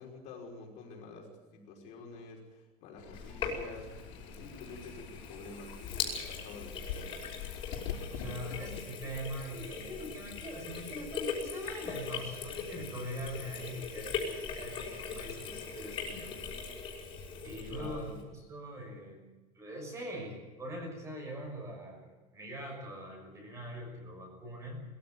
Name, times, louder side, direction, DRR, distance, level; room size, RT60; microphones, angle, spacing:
voice 1, 0.0-3.9 4.2-7.2 17.7-18.2, left 3 dB, 50° left, 0 dB, 5.4 m, -48 dB
Fowl / Bird, 3.0-8.8, left 8 dB, 80° left, 6.9 m, -44 dB
Sink (filling or washing), 3.1-18.2, left 5 dB, 35° left, 5.6 m, -40 dB
voice 2, 8.1-16.3 17.4-18.1 18.5-19.2 19.5-24.8, equal, 20° right, 2 dB, 6.2 m, -42 dB
21.5 x 15.0 x 9.4 m, 1.1 s
cardioid pair, 180°, 15 cm